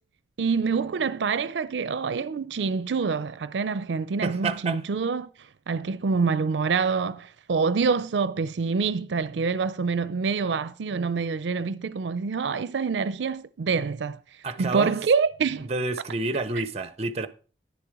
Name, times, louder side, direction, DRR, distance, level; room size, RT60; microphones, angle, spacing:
voice 1, 0.4-5.3 5.7-14.2 14.6-15.7, right 5 dB, 85° right, 0.4 m, -26 dB
voice 2, 4.2-4.8 14.4-15.0 15.6-17.3, right 3 dB, 35° right, 0.7 m, -29 dB
10.5 x 6.9 x 4.8 m
head